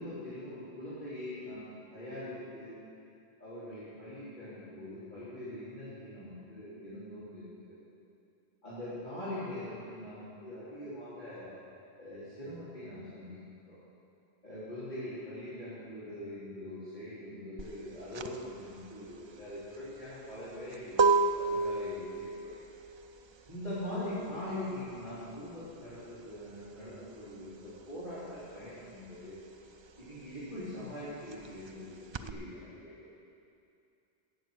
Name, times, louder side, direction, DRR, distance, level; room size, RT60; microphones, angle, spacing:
voice 1, 0.0-2.8 3.4-7.8 8.6-11.5 12.0-13.8 14.4-22.6 23.5-29.4 30.0-33.1, left 1 dB, 45° left, -14 dB, 3.9 m, -42 dB
sound 1, 17.6-27.8 28.1-32.3, right 4 dB, 45° right, 0.3 m, -32 dB
15.5 x 8.1 x 6.5 m, 2.6 s
omnidirectional pair, 1.0 m